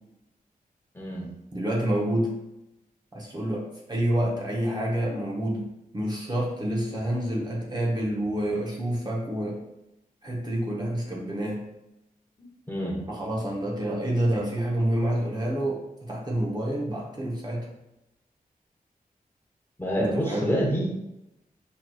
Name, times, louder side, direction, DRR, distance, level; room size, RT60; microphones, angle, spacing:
voice 1, 0.9-1.3 12.7-13.0 19.8-20.9, equal, 15° left, -3 dB, 0.9 m, -27 dB
voice 2, 1.5-2.3 3.1-5.7 5.9-9.6 10.2-11.6 13.1-17.7 20.0-20.5, right 1 dB, 25° right, -3 dB, 0.7 m, -28 dB
5.9 x 2.7 x 2.3 m, 0.91 s
wide cardioid pair, 125°, 15 cm